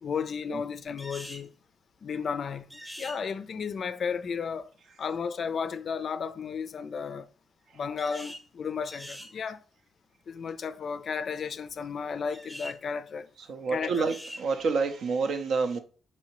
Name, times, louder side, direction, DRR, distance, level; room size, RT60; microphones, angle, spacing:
voice 1, 0.0-1.5 2.0-4.7 5.0-7.3 7.7-9.6 10.3-13.3 13.7-14.1, left 6 dB, 55° left, 0.3 m, -33 dB
sound 1, 1.0-1.5 2.7-3.2 8.0-8.5 8.8-9.3 12.3-12.8 13.9-14.4, equal, 5° right, 0.7 m, -43 dB
voice 2, 13.5-15.8, right 4 dB, 70° right, 0.5 m, -28 dB
4.2 x 2.7 x 2.9 m
cardioid pair, 75°, 0 cm